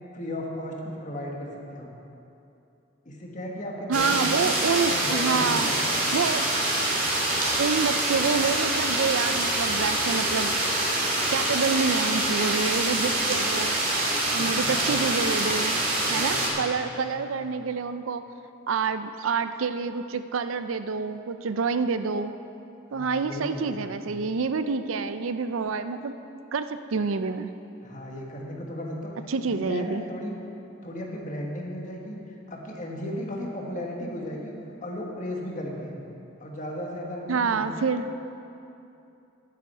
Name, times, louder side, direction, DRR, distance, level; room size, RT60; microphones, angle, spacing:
voice 1, 0.1-2.0 3.1-4.5 4.9-6.2 14.3-15.0 16.1-16.7 17.1-17.4 22.9-24.0 27.8-29.1 29.4-30.3 30.8-34.5 34.8-36.0 36.4-37.9, left 1 dB, 40° left, -1 dB, 1.6 m, -35 dB
sound 1, 3.9-16.5, right 2 dB, 45° right, 2.5 m, -25 dB
voice 2, 3.9-5.7 6.1-6.4 7.6-10.6 11.3-13.8 14.3-15.8 16.1-18.2 18.7-22.3 22.9-26.1 26.5-27.5 29.3-30.0 37.3-38.2, right 5 dB, 85° right, 11 dB, 0.5 m, -27 dB
11.0 x 9.2 x 5.6 m, 2.7 s
head